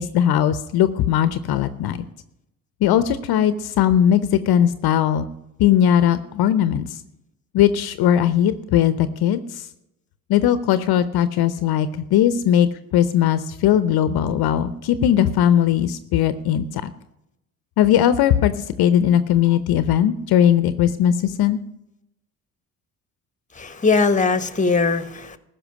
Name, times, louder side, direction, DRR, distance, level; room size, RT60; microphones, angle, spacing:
voice 1, 0.0-2.0 2.8-5.3 5.6-6.9 7.5-9.6 10.3-16.9 17.8-18.5 18.8-21.6, left 10 dB, 60° left, 13 dB, 0.8 m, -19 dB
voice 2, 23.5-25.4, left 4 dB, 15° left, 13 dB, 1.3 m, -20 dB
15.0 x 5.7 x 9.6 m, 0.86 s
hypercardioid pair, 55°, 42 cm